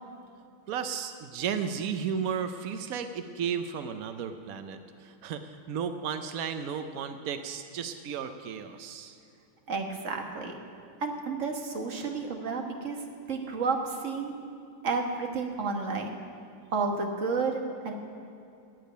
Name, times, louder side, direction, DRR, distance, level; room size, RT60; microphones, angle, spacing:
voice 1, 0.7-9.2, right 7 dB, 85° right, 8 dB, 0.7 m, -34 dB
voice 2, 9.7-10.6 11.0-13.0 13.3-14.3 14.8-16.2 16.7-17.9, right 4 dB, 40° right, 3 dB, 1.4 m, -31 dB
12.5 x 8.5 x 9.2 m, 2.6 s
omnidirectional pair, 2.3 m